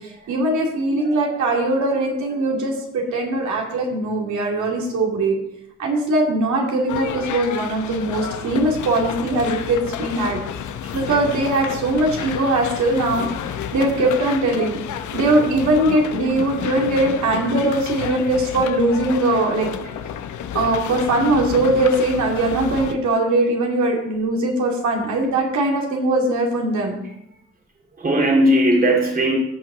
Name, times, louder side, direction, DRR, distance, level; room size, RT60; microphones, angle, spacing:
voice 1, 0.3-5.4 5.8-10.4 10.9-13.3 13.7-14.8 15.1-19.7 20.5-27.0, right 2 dB, 70° right, 0 dB, 2.5 m, -20 dB
voice 2, 1.0-1.4 28.0-29.4, right 1 dB, 30° right, 0 dB, 2.3 m, -18 dB
sound 1, 6.9-22.9, left 9 dB, 75° left, 0.8 m, -30 dB
14.5 x 5.8 x 3.9 m, 0.78 s
cardioid pair, 90°, 30 cm